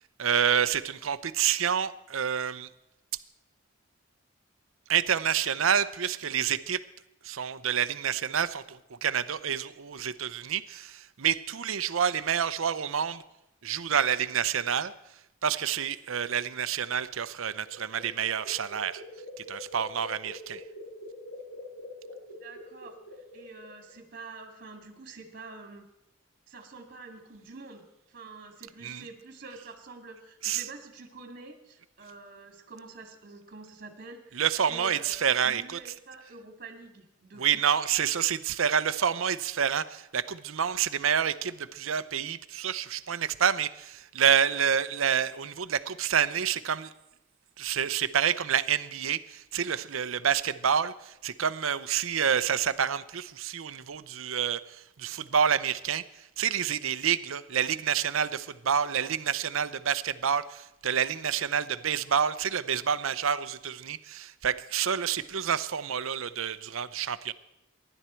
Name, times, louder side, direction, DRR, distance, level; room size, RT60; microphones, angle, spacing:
voice 1, 0.2-2.7 4.9-6.8 7.2-13.2 13.6-14.9 15.4-19.0 19.5-20.6 28.8-29.0 30.4-30.6 34.3-35.8 37.4-46.9 47.6-56.0 56.4-67.3, right 8 dB, 75° right, 14 dB, 0.7 m, -28 dB
sound 1, 17.5-23.9, left 1 dB, 90° left, 6.2 m, -45 dB
voice 2, 22.4-23.0 23.3-25.8 26.5-34.4 34.7-37.7, right 3 dB, 45° right, 5 dB, 2.2 m, -47 dB
24.0 x 11.0 x 4.5 m, 0.87 s
head